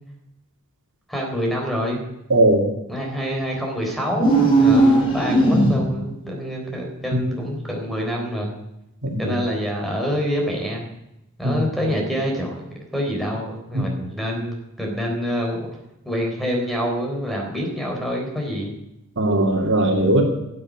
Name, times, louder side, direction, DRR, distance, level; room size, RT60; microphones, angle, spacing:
voice 1, 1.1-2.0 2.9-8.5 9.2-10.9 11.4-15.7 16.1-18.7, equal, ahead, 0 dB, 3.8 m, -26 dB
voice 2, 2.3-2.6 7.1-7.2 9.0-9.4 11.4-11.6 13.7-13.8 19.2-20.2, right 1 dB, 60° right, 2 dB, 2.6 m, -19 dB
sound 1, 4.1-6.1, right 2 dB, 25° left, 5.9 m, -17 dB
12.0 x 8.8 x 9.9 m, 0.89 s
head